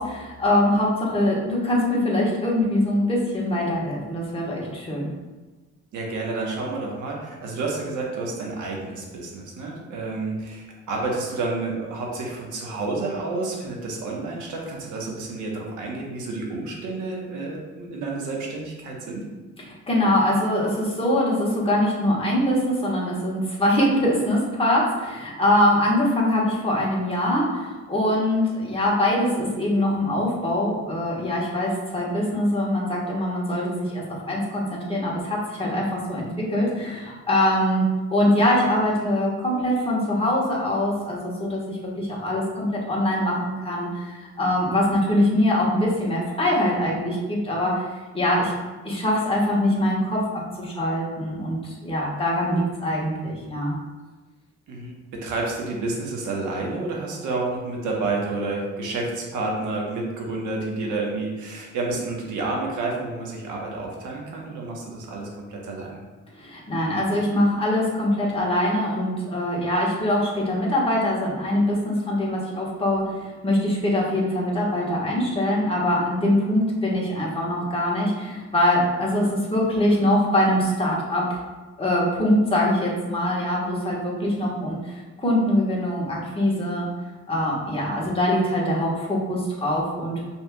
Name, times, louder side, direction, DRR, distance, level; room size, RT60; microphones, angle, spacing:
voice 1, 0.0-5.1 19.6-47.9 48.1-48.5 48.8-53.7 66.3-81.4 81.8-86.9 87.3-90.2, left 1 dB, 20° left, -4 dB, 1.4 m, -23 dB
voice 2, 5.9-19.3 54.7-66.0, right 3 dB, 80° right, -1 dB, 1.1 m, -30 dB
5.4 x 3.4 x 2.3 m, 1.3 s
cardioid pair, 90°, 30 cm